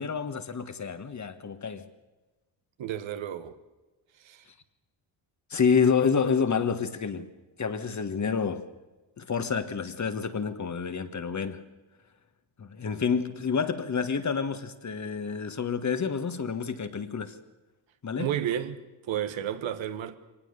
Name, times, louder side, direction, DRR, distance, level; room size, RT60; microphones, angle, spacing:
voice 1, 0.0-1.9 5.5-7.2 7.6-8.6 9.2-11.6 12.6-17.4 18.0-18.3, left 6 dB, 40° left, 1.6 m, -28 dB
voice 2, 2.8-3.6 4.2-4.5 18.2-18.8 19.1-20.1, right 10 dB, 80° right, 1.5 m, -32 dB
23.5 x 19.0 x 6.8 m
cardioid pair, 95°, 46 cm